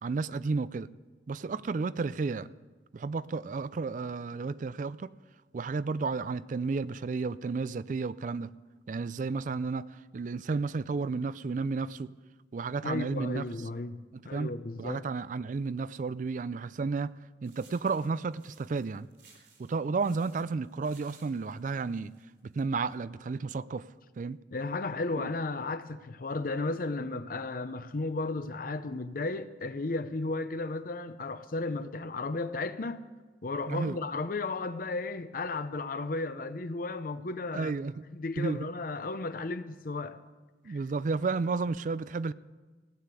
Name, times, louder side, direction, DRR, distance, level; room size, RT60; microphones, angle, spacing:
voice 1, 0.0-0.9 1.3-2.5 2.9-5.1 5.5-8.5 8.9-12.1 12.5-13.4 14.1-14.5 14.8-17.1 17.4-19.1 19.6-22.1 22.4-23.9 24.2-24.4 25.2-25.3 33.7-34.0 37.5-38.0 38.4-38.6 40.6-42.3, right 4 dB, 45° right, 0.4 m, -32 dB
voice 2, 12.8-15.0 24.5-33.0 33.4-37.7 38.1-40.2 40.6-40.8, left 3 dB, 50° left, 0.6 m, -34 dB
sound 1, 17.4-22.6, right 5 dB, 70° right, 3.6 m, -61 dB
16.5 x 9.6 x 8.2 m
head